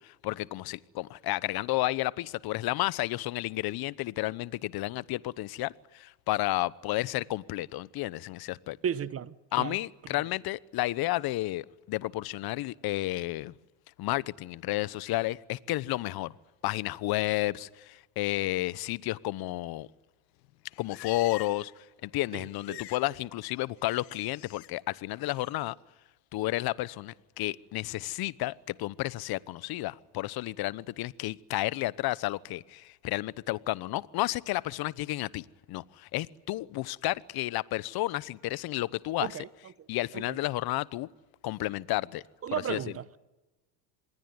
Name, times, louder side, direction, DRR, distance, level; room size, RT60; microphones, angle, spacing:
voice 1, 0.0-8.8 9.5-13.5 14.0-16.3 16.6-19.9 20.8-25.7 26.3-39.4 39.9-41.1 41.4-42.2 42.5-42.8, left 17 dB, 50° left, 1.0 m, -32 dB
voice 2, 8.8-9.8 22.7-22.8 39.2-39.5 42.4-43.0, right 9 dB, 30° right, 1.0 m, -33 dB
Livestock farm animals working animals, 20.4-21.8 22.0-23.1 23.4-24.7 25.1-25.5, left 18 dB, 85° left, 1.5 m, -48 dB
26.5 x 21.5 x 9.6 m
supercardioid pair, 105°, 49 cm